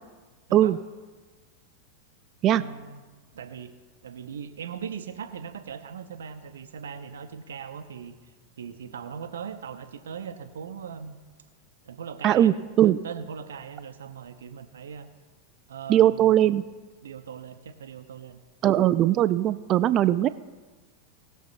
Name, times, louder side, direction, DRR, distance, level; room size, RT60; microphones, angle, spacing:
voice 1, 2.5-3.0 3.3-3.7 4.0-8.1 8.6-11.2 11.8-12.5 12.8-15.1 15.7-16.4 17.0-18.4, right 7 dB, 65° right, 10 dB, 0.8 m, -39 dB
voice 2, 12.2-13.0 15.9-16.6 18.6-20.3, right 12 dB, 35° right, 15 dB, 0.4 m, -20 dB
19.0 x 7.0 x 4.1 m, 1.3 s
figure-of-eight pair, 90°, 0 cm